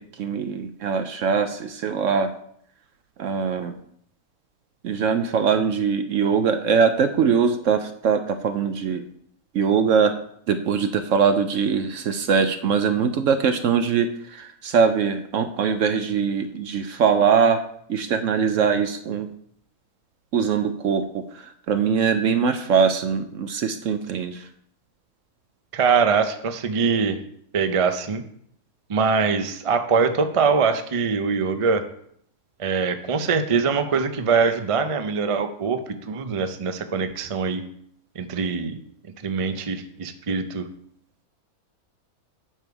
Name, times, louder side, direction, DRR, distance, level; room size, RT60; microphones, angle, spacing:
voice 1, 0.0-2.3 3.2-3.8 4.8-9.0 9.5-10.2 10.5-17.6 17.9-19.3 20.3-24.5, right 6 dB, 65° right, 9 dB, 0.9 m, -22 dB
voice 2, 25.7-27.2 27.5-28.2 28.9-31.8 32.6-37.6 38.1-38.8 39.2-40.7, right 5 dB, 50° right, 8 dB, 0.4 m, -23 dB
8.8 x 6.9 x 4.7 m, 0.68 s
omnidirectional pair, 1.6 m